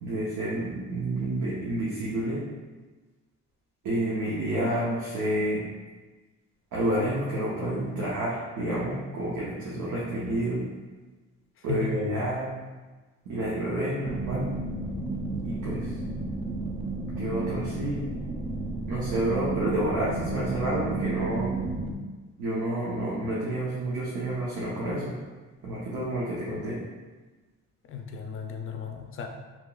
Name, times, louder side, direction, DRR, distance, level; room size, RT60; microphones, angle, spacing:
voice 1, 0.0-2.4 3.8-5.6 6.7-10.6 11.6-12.5 13.3-14.5 15.4-15.9 17.2-18.1 18.9-21.5 22.4-25.2 25.6-26.8, right 1 dB, 85° right, -7 dB, 0.8 m, -29 dB
voice 2, 11.6-12.1 27.8-29.3, left 6 dB, 45° left, 4 dB, 0.4 m, -34 dB
sound 1, 14.0-21.9, right 3 dB, 20° right, 0.3 m, -32 dB
3.5 x 2.8 x 2.3 m, 1.3 s
cardioid pair, 90°, 30 cm